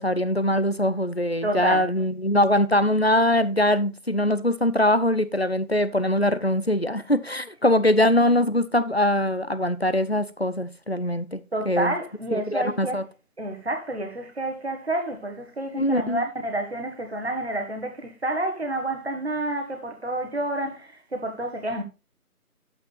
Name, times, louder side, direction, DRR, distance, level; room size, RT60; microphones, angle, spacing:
voice 1, 0.0-11.9 12.3-13.0 15.8-16.2, left 1 dB, 45° left, 0.5 m, -22 dB
voice 2, 1.4-1.9 11.5-13.0 13.4-21.8, right 1 dB, 45° right, 1.6 m, -29 dB
10.5 x 8.7 x 2.4 m
figure-of-eight pair, 170°, 46 cm